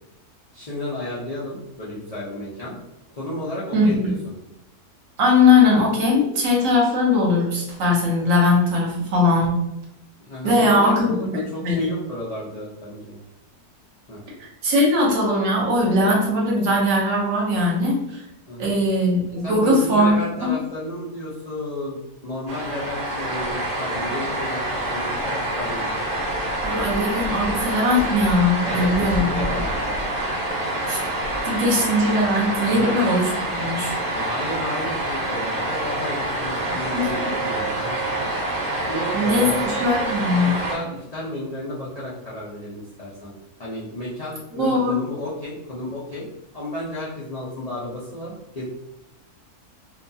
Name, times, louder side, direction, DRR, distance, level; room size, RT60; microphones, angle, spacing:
voice 1, 0.5-2.8 3.1-4.3 10.2-13.2 14.1-14.2 18.5-18.8 19.4-22.0 22.2-24.7 24.9-26.0 28.6-30.1 32.7-33.0 34.1-38.2 38.9-39.7 40.4-43.3 43.6-46.3 46.5-48.6, left 1 dB, 70° left, -8 dB, 0.3 m, -32 dB
voice 2, 3.7-4.1 5.2-9.5 10.4-11.3 11.6-11.9 14.4-18.2 18.6-20.6 26.6-29.4 30.9-31.0 31.5-33.9 36.9-37.1 39.1-40.6 44.6-45.0, left 2 dB, 65° right, -2 dB, 1.1 m, -20 dB
sound 1, 22.5-40.8, right 1 dB, 50° right, 0.7 m, -26 dB
2.8 x 2.2 x 2.6 m, 0.87 s
omnidirectional pair, 1.6 m